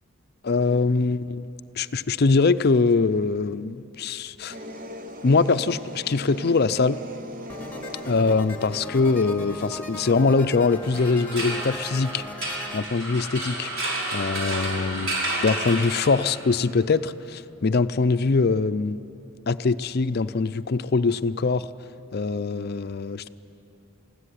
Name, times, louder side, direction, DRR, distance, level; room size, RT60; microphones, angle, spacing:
voice 1, 0.4-1.5 1.8-4.6 5.2-7.0 8.1-12.2 12.7-13.7 14.1-19.0 19.5-21.7 22.1-23.3, left 4 dB, 50° left, 13 dB, 0.5 m, -23 dB
sound 1, 4.5-9.4, equal, 40° right, 0.9 m, -39 dB
sound 2, 7.5-12.8, left 1 dB, 10° left, 1.5 m, -38 dB
sound 3, 10.8-16.5, right 1 dB, 70° right, 5.3 m, -31 dB
21.0 x 16.0 x 9.9 m, 3.0 s
head